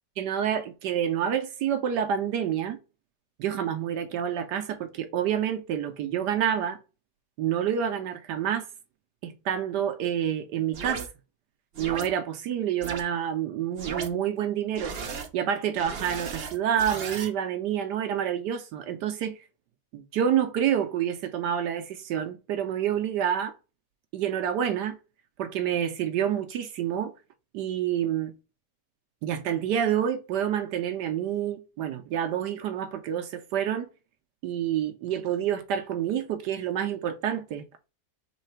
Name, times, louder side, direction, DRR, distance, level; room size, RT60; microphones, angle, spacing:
voice 1, 0.2-2.8 3.4-6.8 7.4-8.7 9.2-11.1 11.8-14.9 15.3-19.4 19.9-23.5 24.1-25.0 25.4-27.1 27.5-28.3 29.2-33.9 34.4-37.6, right 9 dB, 75° right, 1.2 m, -28 dB
sound 1, 10.7-11.1 11.7-12.1 12.8-13.0 13.8-14.1 14.7-15.3 15.8-17.3, right 6 dB, 55° right, 0.7 m, -35 dB
3.9 x 3.2 x 4.3 m
omnidirectional pair, 2.0 m